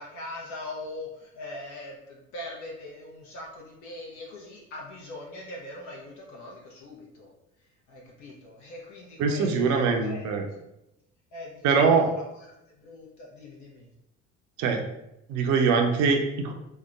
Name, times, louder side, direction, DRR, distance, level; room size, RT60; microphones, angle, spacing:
voice 1, 0.0-7.3 7.6-10.2 11.3-13.9, left 1 dB, 50° left, -2 dB, 0.8 m, -41 dB
voice 2, 9.2-10.5 11.6-12.1 14.6-14.8 15.3-16.5, right 5 dB, 50° right, 3 dB, 0.6 m, -23 dB
4.6 x 2.1 x 2.4 m, 0.89 s
figure-of-eight pair, 55°, 37 cm